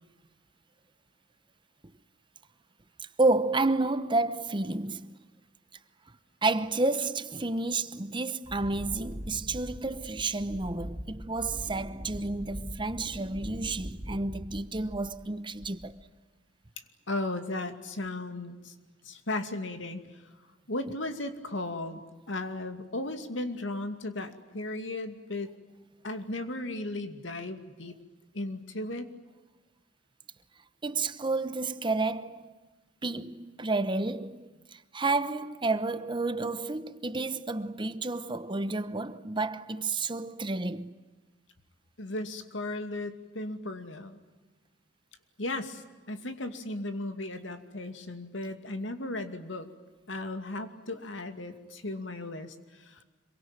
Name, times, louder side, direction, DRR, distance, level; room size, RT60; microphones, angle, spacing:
voice 1, 3.2-5.2 6.4-15.9 30.8-32.5 33.0-40.9, right 3 dB, 25° right, 0.9 m, -30 dB
Wind, 8.4-15.3 15.6-16.1, equal, 40° right, 3.4 m, -42 dB
voice 2, 17.1-18.7 19.0-20.2 20.7-22.0 22.3-25.5 26.0-28.0 28.3-29.1 42.0-44.2 45.4-49.7 50.1-53.0, left 2 dB, 80° left, 2.5 m, -36 dB
26.5 x 23.5 x 9.1 m
head